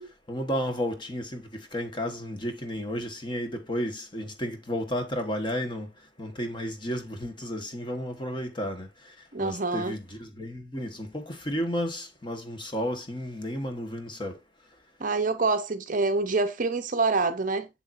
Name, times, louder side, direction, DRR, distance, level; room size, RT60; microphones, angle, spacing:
voice 1, 0.3-5.9 6.2-14.4, equal, 25° left, 1.2 m, -32 dB
voice 2, 9.3-9.9 15.0-17.7, right 3 dB, 40° right, 0.6 m, -26 dB
7.3 x 6.8 x 2.5 m
head